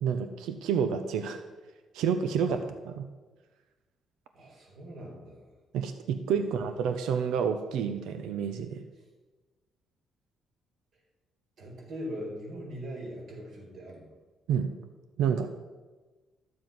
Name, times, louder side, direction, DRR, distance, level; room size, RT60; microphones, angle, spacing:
voice 1, 0.0-1.4 1.9-2.6 3.0-3.1 5.7-8.8 14.5-14.7 15.2-15.5, right 7 dB, 90° right, 8 dB, 0.8 m, -29 dB
voice 2, 4.3-5.5 6.3-6.7 11.6-14.1, equal, 65° right, -1 dB, 4.5 m, -41 dB
12.5 x 7.4 x 6.0 m, 1.2 s
cardioid pair, 90°, 0 cm